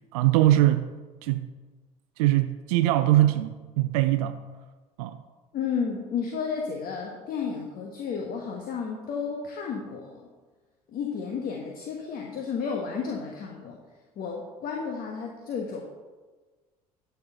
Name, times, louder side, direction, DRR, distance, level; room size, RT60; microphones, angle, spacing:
voice 1, 0.1-0.9 1.2-1.4 2.2-4.4 5.0-5.2, right 14 dB, 70° right, 0.5 m, -22 dB
voice 2, 5.5-10.2 10.9-13.8 14.2-15.8, left 6 dB, 50° left, 1.3 m, -32 dB
12.0 x 4.6 x 5.4 m
hypercardioid pair, 65°, 19 cm